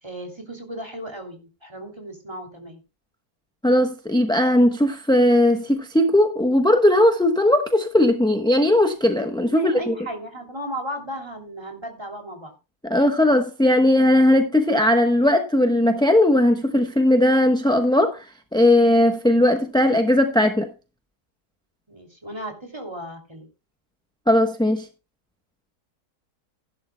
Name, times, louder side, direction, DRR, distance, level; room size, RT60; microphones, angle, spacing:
voice 1, 0.0-2.8 9.5-12.5 21.9-23.5, equal, 15° right, 3.0 m, -35 dB
voice 2, 3.6-10.0 12.8-20.7 24.3-24.9, left 1 dB, 5° left, 0.7 m, -18 dB
15.0 x 11.5 x 2.2 m
omnidirectional pair, 1.6 m